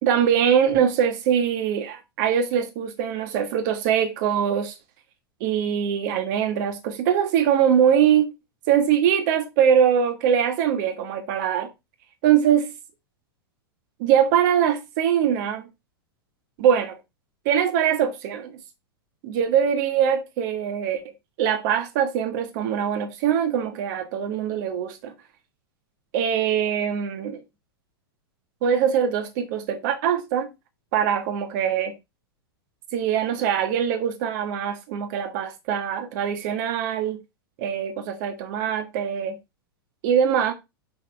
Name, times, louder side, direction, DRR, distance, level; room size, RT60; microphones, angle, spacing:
voice 1, 0.0-4.7 5.4-8.3 8.7-11.7 12.2-12.7 14.0-15.7 16.6-17.0 17.4-18.5 19.2-21.0 21.4-25.1 26.1-27.4 28.6-30.5 30.9-31.9 32.9-37.2 37.6-39.4 40.0-40.5, right 8 dB, 50° right, 1.6 m, -22 dB
6.1 x 5.3 x 3.5 m
figure-of-eight pair, 100°, 13 cm